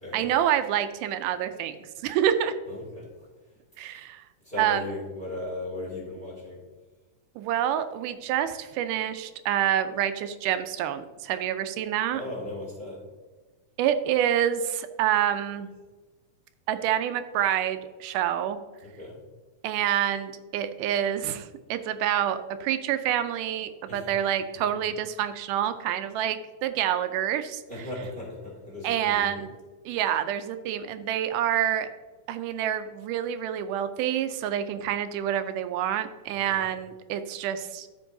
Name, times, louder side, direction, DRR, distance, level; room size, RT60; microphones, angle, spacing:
voice 1, 0.1-1.7 2.0-2.5 3.8-4.2 4.6-4.9 7.4-12.2 13.8-15.7 16.7-18.6 19.6-27.6 28.8-29.5 29.9-31.9 32.3-37.9, right 10 dB, 85° right, 10 dB, 2.1 m, -27 dB
voice 2, 2.7-3.1 3.9-4.1 4.4-6.6 12.1-13.0 18.8-19.2 23.9-24.0 27.7-29.3 36.3-36.7, left 1 dB, 20° left, -4 dB, 2.1 m, -37 dB
14.0 x 5.2 x 2.7 m, 1.3 s
omnidirectional pair, 3.6 m